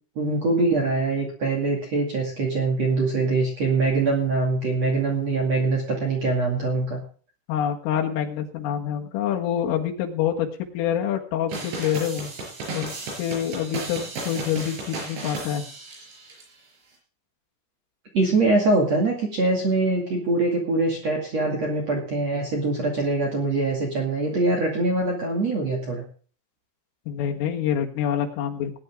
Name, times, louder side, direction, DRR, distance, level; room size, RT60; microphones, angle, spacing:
voice 1, 0.2-7.0 18.1-26.0, right 3 dB, 40° right, -1 dB, 2.8 m, -23 dB
voice 2, 7.5-10.5 10.7-12.3 12.7-15.7 24.3-24.4 27.1-28.8, left 9 dB, 80° left, 2 dB, 4.3 m, -26 dB
sound 1, 11.5-16.4, right 3 dB, 70° right, 7.6 m, -34 dB
20.0 x 10.0 x 3.7 m, 0.40 s
omnidirectional pair, 5.7 m